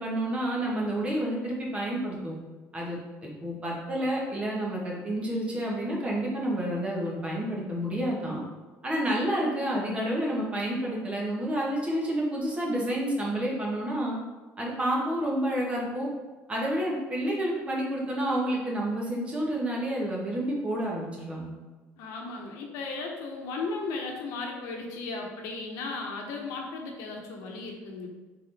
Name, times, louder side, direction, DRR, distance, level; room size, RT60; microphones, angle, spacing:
voice 1, 0.0-2.4 2.7-8.4 8.8-14.2 14.6-16.1 16.5-21.5, right 1 dB, 20° right, -3 dB, 1.1 m, -29 dB
voice 2, 22.0-28.1, left 3 dB, 85° left, 1 dB, 0.8 m, -36 dB
3.8 x 3.8 x 3.3 m, 1.2 s
cardioid pair, 125°, 5 cm